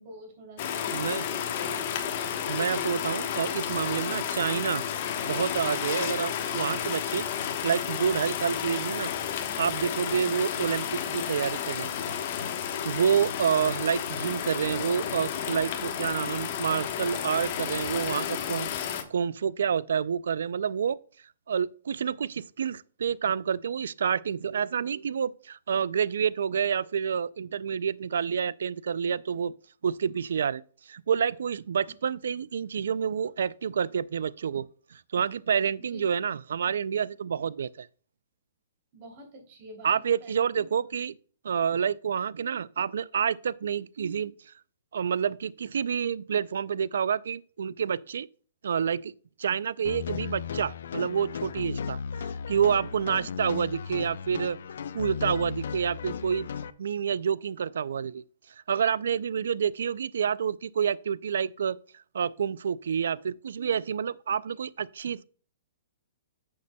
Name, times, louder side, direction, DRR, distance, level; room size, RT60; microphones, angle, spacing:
voice 1, 0.0-1.8 12.9-13.5 35.9-36.0 38.9-40.7, right 1 dB, 40° right, 3.0 m, -48 dB
sound 1, 0.6-19.0, left 8 dB, 45° left, 1.1 m, -32 dB
voice 2, 0.9-1.2 2.5-4.8 5.2-9.1 9.6-11.9 12.8-21.0 21.5-29.5 29.8-37.9 39.8-41.2 41.4-44.5 44.9-48.3 48.6-49.1 49.4-54.6 54.9-56.5 56.8-58.2 58.7-61.8 62.1-65.3, right 7 dB, 75° right, 0.3 m, -28 dB
sound 2, 49.8-56.7, left 7 dB, 70° left, 0.5 m, -35 dB
10.5 x 6.6 x 2.2 m
hypercardioid pair, 150°, 0 cm